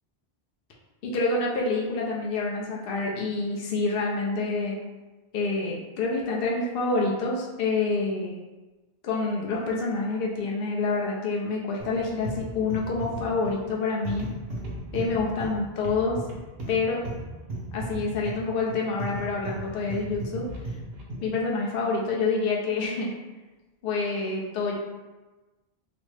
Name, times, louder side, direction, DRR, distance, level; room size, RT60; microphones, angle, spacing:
voice 1, 1.0-4.8 5.3-8.4 9.0-14.3 14.9-16.2 16.7-17.0 17.7-20.5 21.2-23.1 23.8-24.8, left 3 dB, 65° left, -2 dB, 0.8 m, -27 dB
sound 1, 11.8-21.4, right 1 dB, 75° right, 0.9 m, -36 dB
4.0 x 2.0 x 3.2 m, 1.2 s
omnidirectional pair, 1.0 m